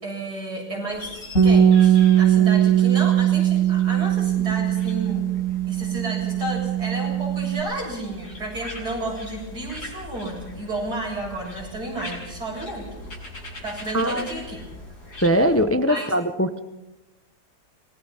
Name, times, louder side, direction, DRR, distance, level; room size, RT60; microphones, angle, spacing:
voice 1, 0.0-5.3 5.7-12.8 13.6-14.6 15.9-16.1, right 1 dB, 80° right, -1 dB, 8.1 m, -32 dB
sound 1, 0.9-15.6, left 1 dB, 75° left, 7.1 m, -41 dB
Bass guitar, 1.4-7.6, right 10 dB, 55° left, 7.0 m, -19 dB
voice 2, 13.9-14.3 15.2-16.6, equal, 15° left, 10 dB, 0.6 m, -21 dB
26.5 x 20.5 x 5.7 m, 0.97 s
omnidirectional pair, 1.7 m